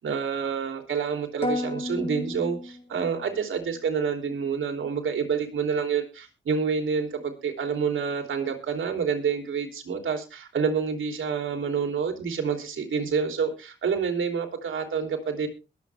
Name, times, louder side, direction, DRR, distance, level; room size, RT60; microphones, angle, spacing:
voice 1, 0.0-15.5, right 6 dB, 85° right, 4 dB, 3.3 m, -28 dB
sound 1, 1.4-3.4, left 1 dB, 30° left, 3.8 m, -32 dB
21.5 x 8.2 x 3.5 m, 0.31 s
cardioid pair, 60°, 20 cm